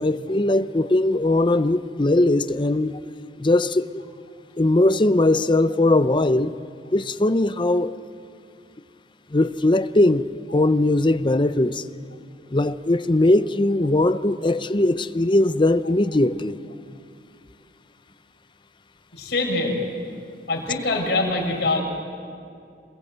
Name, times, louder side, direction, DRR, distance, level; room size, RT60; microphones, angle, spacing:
voice 1, 0.0-3.0 3.4-3.9 4.6-6.5 6.9-7.9 9.3-11.8 12.5-16.6, left 2 dB, 25° left, 13 dB, 0.7 m, -20 dB
voice 2, 19.1-19.8 20.5-21.8, left 2 dB, 65° left, 0 dB, 5.7 m, -24 dB
28.0 x 22.0 x 8.0 m, 2.5 s
head